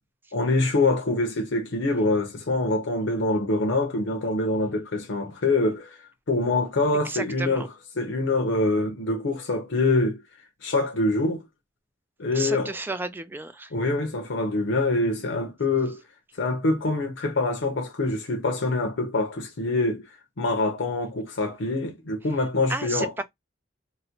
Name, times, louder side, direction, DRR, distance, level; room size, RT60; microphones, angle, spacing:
voice 1, 0.3-7.7 8.0-10.2 10.6-11.4 12.2-12.7 13.7-16.0 16.4-23.1, left 2 dB, 90° left, 0.7 m, -25 dB
voice 2, 7.0-7.7 12.3-13.7 22.7-23.2, right 3 dB, 10° right, 0.3 m, -32 dB
3.9 x 2.1 x 2.8 m
head